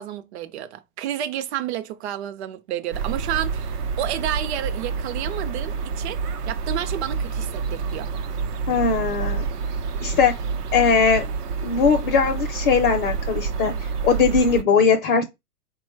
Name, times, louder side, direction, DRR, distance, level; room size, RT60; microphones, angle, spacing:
voice 1, 0.0-8.1, right 11 dB, 45° right, 0.6 m, -30 dB
sound 1, 2.9-14.6, right 5 dB, 85° right, 0.8 m, -28 dB
voice 2, 8.7-9.5 10.0-10.3 10.7-11.3 11.6-15.2, left 5 dB, 35° left, 0.6 m, -20 dB
4.2 x 2.3 x 4.4 m
hypercardioid pair, 130°, 46 cm